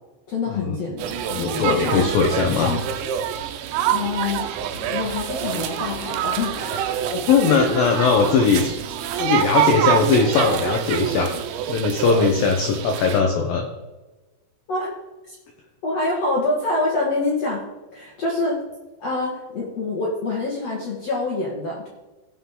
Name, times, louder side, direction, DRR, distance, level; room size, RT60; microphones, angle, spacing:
voice 1, 0.3-2.1 2.5-2.8 3.9-4.5 4.7-7.0 7.6-7.7 14.7-14.9 15.3-15.4 15.8-17.6 17.9-18.6 19.0-21.9, left 2 dB, 60° left, -3 dB, 1.7 m, -26 dB
sound 1, 1.0-13.2, right 10 dB, 80° right, 3.0 m, -26 dB
voice 2, 1.3-2.7 7.1-11.3 11.7-13.7, left 5 dB, 80° left, 3 dB, 2.0 m, -20 dB
17.0 x 5.9 x 3.7 m, 1.1 s
omnidirectional pair, 5.3 m